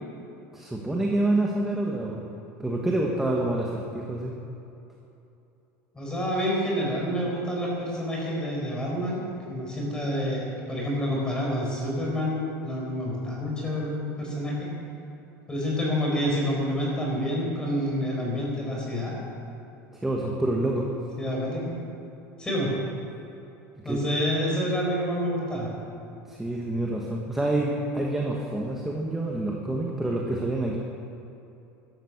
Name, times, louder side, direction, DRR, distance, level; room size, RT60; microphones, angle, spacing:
voice 1, 0.5-2.2 2.6-4.3 19.9-20.9 23.8-24.0 26.3-30.8, right 1 dB, 5° right, -2 dB, 1.3 m, -27 dB
voice 2, 5.9-9.2 9.5-14.7 15.5-19.2 21.2-21.7 22.4-22.7 23.8-25.7, equal, 10° left, -3 dB, 4.8 m, -28 dB
14.5 x 12.5 x 7.2 m, 2.8 s
cardioid pair, 155°, 7 cm